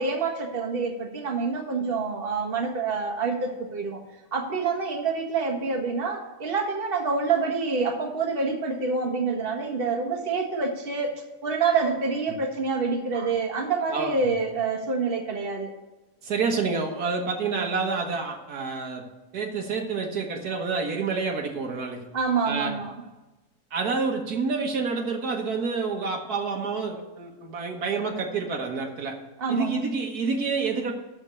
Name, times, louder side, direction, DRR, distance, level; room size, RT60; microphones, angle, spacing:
voice 1, 0.0-4.0 4.3-11.1 11.4-15.7 22.1-22.9 29.4-29.8, right 4 dB, 35° right, 2 dB, 1.6 m, -27 dB
voice 2, 13.9-14.3 16.2-19.1 19.3-22.1 22.4-22.7 23.7-29.2 29.5-30.9, right 4 dB, 70° right, 3 dB, 1.7 m, -28 dB
13.0 x 4.4 x 8.2 m, 1.1 s
omnidirectional pair, 1.7 m